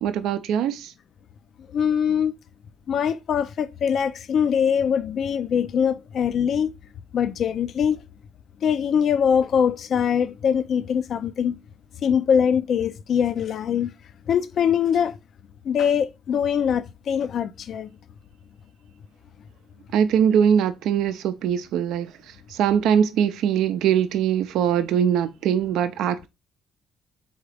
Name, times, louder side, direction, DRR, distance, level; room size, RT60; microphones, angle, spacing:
voice 1, 0.0-0.9 19.9-22.1 22.5-26.3, right 8 dB, 80° right, 0.4 m, -22 dB
voice 2, 1.7-2.3 2.9-6.7 7.1-8.0 8.6-11.6 12.0-13.9 14.3-15.2 15.7-17.9, left 7 dB, 60° left, 0.3 m, -22 dB
3.8 x 3.6 x 3.3 m
cardioid pair, 85°, 0 cm